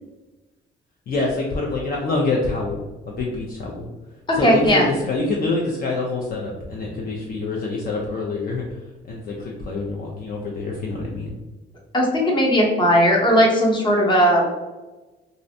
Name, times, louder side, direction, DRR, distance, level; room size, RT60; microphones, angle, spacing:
voice 1, 1.1-3.9 4.3-8.8 9.0-11.4, left 3 dB, 50° left, -2 dB, 0.5 m, -26 dB
voice 2, 4.4-4.9 11.9-14.4, equal, 25° left, -2 dB, 0.8 m, -17 dB
2.5 x 2.0 x 2.6 m, 1.1 s
cardioid pair, 90°, 20 cm